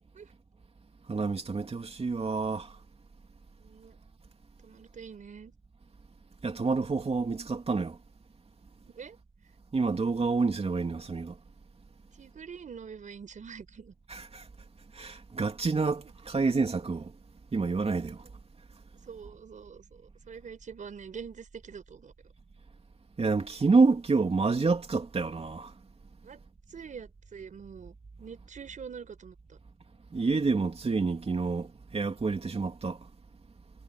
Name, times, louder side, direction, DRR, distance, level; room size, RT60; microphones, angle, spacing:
voice 1, 1.1-2.8 6.4-8.0 9.7-11.4 14.1-14.5 14.9-17.1 17.5-18.2 23.2-25.7 30.1-33.1, right 4 dB, 50° right, 3.0 m, -28 dB
voice 2, 3.6-4.0 4.6-5.5 8.8-9.2 12.2-13.9 16.0-16.1 19.0-22.1 26.2-26.4 26.7-29.6, right 6 dB, 80° right, 4.7 m, -45 dB
cardioid pair, 65°, 13 cm